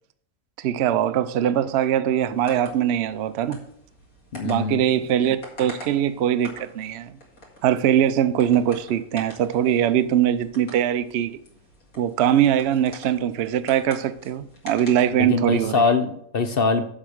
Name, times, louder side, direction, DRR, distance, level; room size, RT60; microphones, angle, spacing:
voice 1, 0.6-3.6 4.4-7.2 7.6-11.3 12.0-15.8, right 10 dB, 60° right, 0.8 m, -22 dB
sound 1, 2.1-15.7, left 1 dB, 85° left, 2.9 m, -46 dB
voice 2, 4.3-4.8 15.2-16.8, left 4 dB, 50° left, 0.8 m, -22 dB
7.6 x 6.5 x 6.4 m
omnidirectional pair, 1.5 m